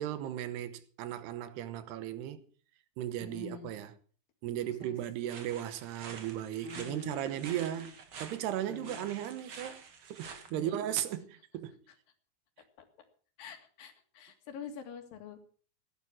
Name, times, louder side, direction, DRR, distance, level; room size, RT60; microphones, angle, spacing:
voice 1, 0.0-2.4 3.0-3.9 4.4-7.9 8.2-9.8 10.1-11.7, right 11 dB, 85° right, 3.1 m, -36 dB
voice 2, 3.2-3.7 4.8-4.9 6.6-7.9 8.7-9.2 10.5-10.8 13.4-15.4, left 8 dB, 65° left, 3.5 m, -47 dB
sound 1, 5.2-10.5, right 6 dB, 45° right, 1.8 m, -48 dB
16.5 x 11.0 x 6.1 m
omnidirectional pair, 4.7 m